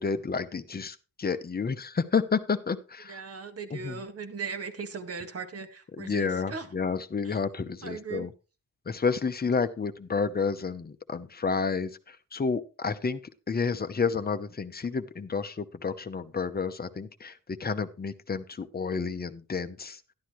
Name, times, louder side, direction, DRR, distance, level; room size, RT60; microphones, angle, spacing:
voice 1, 0.0-3.2 3.7-4.0 6.0-8.3 8.9-13.2 13.5-20.0, left 5 dB, 30° left, 10 dB, 0.8 m, -30 dB
voice 2, 3.1-6.7 7.2-7.4 7.8-8.3, right 5 dB, 45° right, 6 dB, 1.8 m, -38 dB
11.5 x 11.5 x 3.1 m, 0.31 s
wide cardioid pair, 155°, 32 cm